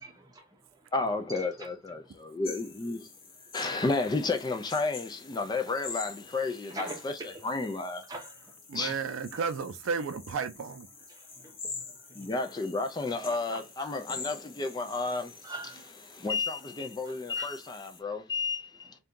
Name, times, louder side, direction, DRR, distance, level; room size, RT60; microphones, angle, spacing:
voice 1, 0.0-1.7 2.0-2.1 3.6-3.7 6.7-7.4 8.1-8.5 11.0-12.3 12.9-13.9 15.0-15.1 15.4-15.9 17.0-17.6, right 2 dB, 20° right, 0.7 m, -45 dB
voice 2, 0.9-3.1 3.5-8.1 8.7-9.0 12.2-15.5 16.1-18.9, left 3 dB, 20° left, 0.3 m, -32 dB
sound 1, 2.4-18.0, left 4 dB, 70° left, 1.1 m, -46 dB
voice 3, 8.7-10.9, right 5 dB, 90° right, 0.4 m, -33 dB
2.6 x 2.3 x 3.6 m
head